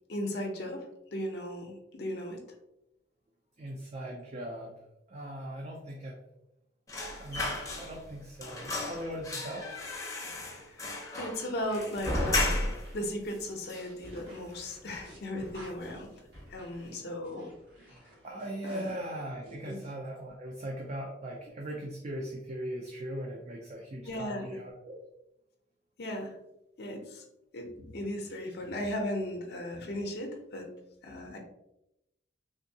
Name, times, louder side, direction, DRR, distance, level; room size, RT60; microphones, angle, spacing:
voice 1, 0.1-2.4 10.7-12.7 12.9-16.1 16.5-17.5 18.6-18.9 19.7-19.8 24.1-24.6 26.0-26.3 26.8-27.2 27.5-30.7 31.0-31.4, left 1 dB, 60° left, 1 dB, 0.6 m, -36 dB
voice 2, 3.6-4.8 5.1-6.2 7.2-7.5 7.8-9.9 17.3-17.4 18.2-25.0, right 1 dB, 40° right, 0 dB, 0.4 m, -39 dB
sound 1, 6.9-8.1 8.4-12.9 13.3-13.4 13.7-14.5 14.8-15.0 15.4-16.0 16.3-16.5, left 2 dB, 20° left, 0.6 m, -34 dB
sound 2, 11.7-19.9, right 1 dB, 80° right, 1.3 m, -53 dB
3.5 x 2.7 x 2.7 m, 0.86 s
head